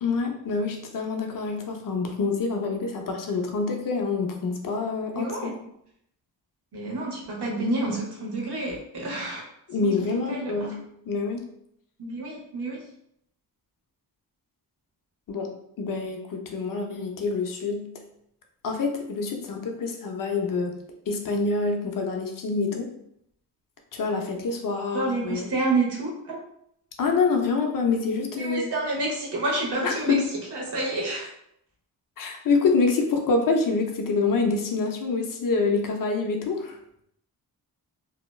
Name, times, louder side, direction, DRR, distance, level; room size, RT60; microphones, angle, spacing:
voice 1, 0.0-5.4 9.7-11.5 15.3-17.9 18.6-20.8 21.1-22.9 23.9-25.5 27.0-28.7 29.8-30.3 32.2-36.8, left 4 dB, 55° left, 3 dB, 0.5 m, -26 dB
voice 2, 5.1-5.6 6.7-9.5 9.8-9.9 10.3-10.7 12.0-12.8 24.9-26.4 28.4-30.2 30.5-31.3, right 2 dB, 90° right, -2 dB, 0.9 m, -29 dB
2.7 x 2.1 x 2.2 m, 0.74 s
wide cardioid pair, 100°, 39 cm